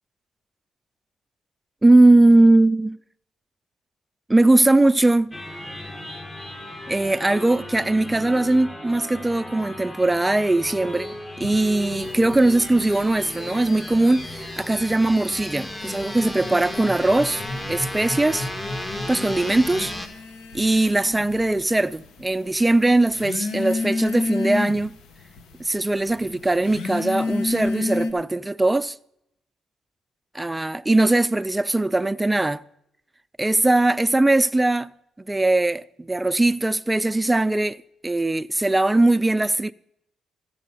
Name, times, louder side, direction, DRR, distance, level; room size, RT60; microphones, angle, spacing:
voice 1, 1.8-3.0 4.3-5.3 6.9-18.5 19.1-19.9 20.5-25.0 25.6-29.0 30.3-32.6 33.4-34.9 35.3-39.7, right 2 dB, 10° right, 0.4 m, -20 dB
sound 1, 5.3-20.1, left 1 dB, 20° left, 1.4 m, -34 dB
sound 2, 11.4-14.5 14.8-15.6 16.0-28.1, left 3 dB, 80° left, 1.1 m, -32 dB
14.0 x 8.3 x 5.6 m
cardioid pair, 90°, 0 cm